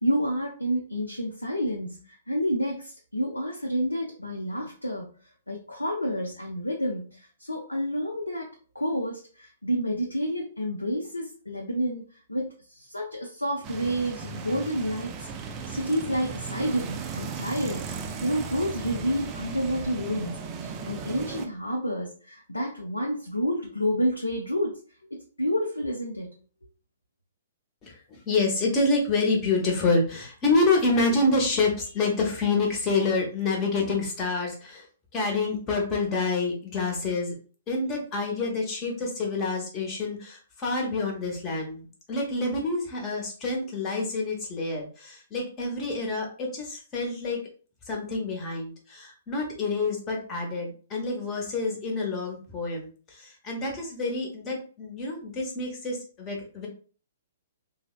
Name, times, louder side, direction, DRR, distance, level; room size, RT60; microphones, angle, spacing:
voice 1, 0.0-5.2 5.5-12.0 12.3-15.3 15.7-24.8 25.1-26.4, equal, 85° left, -1 dB, 0.5 m, -29 dB
sound 1, 13.6-21.5, right 5 dB, 25° right, 0.4 m, -36 dB
voice 2, 27.8-34.9 35.1-37.3 37.7-47.4 47.9-56.7, left 3 dB, 25° left, 0 dB, 0.9 m, -27 dB
3.2 x 2.0 x 2.4 m, 0.40 s
figure-of-eight pair, 120°, 0 cm